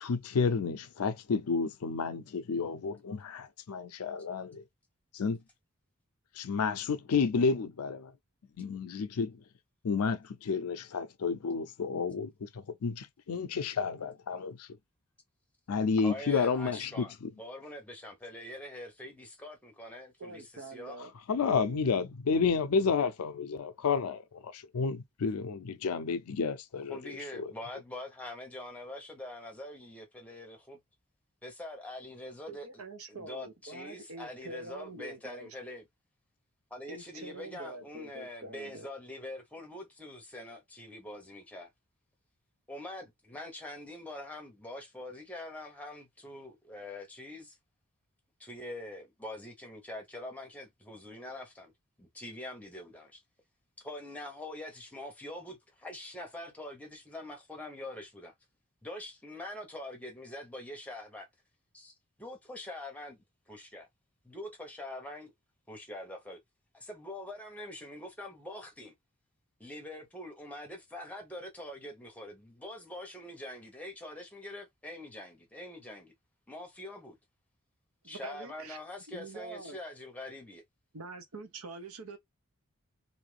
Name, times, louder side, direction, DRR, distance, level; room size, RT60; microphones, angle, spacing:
voice 1, 0.0-4.6 5.1-5.4 6.4-8.1 8.6-9.4 9.8-14.7 15.7-17.0 21.3-27.0 27.4-27.5, left 5 dB, 90° left, 0.5 m, -31 dB
voice 2, 16.0-20.4 20.7-21.0 26.9-30.8 31.4-32.8 33.1-35.8 36.7-41.7 42.7-47.5 48.4-51.7 52.0-53.2 53.8-58.3 58.8-61.3 61.7-63.9 64.2-65.3 65.7-66.4 66.7-68.9 69.6-76.1 76.5-77.2 78.0-80.6, left 1 dB, 5° left, 0.8 m, -44 dB
voice 3, 20.2-21.1 21.5-22.0 32.5-35.6 36.9-38.9 78.0-78.8 79.1-79.8 80.9-82.2, right 2 dB, 75° right, 0.8 m, -45 dB
2.7 x 2.5 x 3.2 m
head